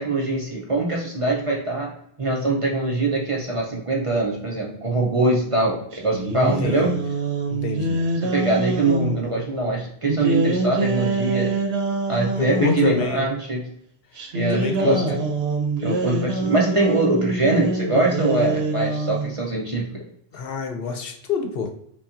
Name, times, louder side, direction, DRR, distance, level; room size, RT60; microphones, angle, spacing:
voice 1, 0.0-1.9 2.2-6.9 8.2-11.5 12.1-13.6 14.3-15.2 15.8-20.1, right 2 dB, 40° right, -2 dB, 0.6 m, -23 dB
sound 1, 5.9-9.2 10.1-13.0 14.2-19.4, right 2 dB, 75° right, 0.9 m, -25 dB
voice 2, 6.6-6.9 7.5-8.0 12.4-13.2 14.5-15.0 20.3-21.7, left 5 dB, 65° left, 5 dB, 0.8 m, -26 dB
5.5 x 2.3 x 2.5 m, 0.70 s
omnidirectional pair, 1.1 m